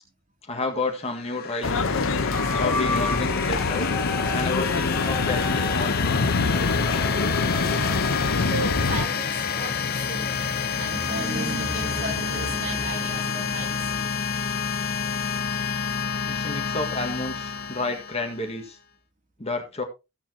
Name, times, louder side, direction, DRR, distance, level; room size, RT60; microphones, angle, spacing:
voice 1, 0.4-2.1 2.5-3.9 4.3-6.3 16.2-18.8 19.4-19.8, left 2 dB, 30° left, 1.7 m, -31 dB
sound 1, 1.0-18.6, left 7 dB, 45° left, 0.7 m, -29 dB
sound 2, 1.6-9.1, left 3 dB, 75° left, 1.0 m, -25 dB
sound 3, 2.3-8.2, left 2 dB, 10° left, 1.0 m, -34 dB
voice 2, 7.8-14.3, right 2 dB, 40° right, 2.5 m, -34 dB
15.0 x 7.3 x 2.9 m
head